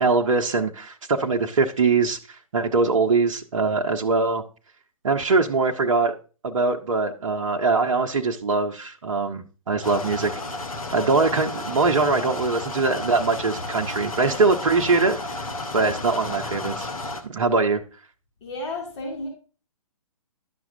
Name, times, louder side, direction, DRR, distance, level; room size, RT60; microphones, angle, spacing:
voice 1, 0.0-4.4 5.0-6.2 6.4-10.3 10.9-15.2 15.7-16.9 17.2-17.8, right 4 dB, 60° right, 4 dB, 0.7 m, -22 dB
sound 1, 9.8-17.2, left 2 dB, 75° left, 1.1 m, -32 dB
voice 2, 18.4-19.3, left 2 dB, 50° left, 0 dB, 2.4 m, -32 dB
11.0 x 5.9 x 2.6 m, 0.37 s
figure-of-eight pair, 130°, 18 cm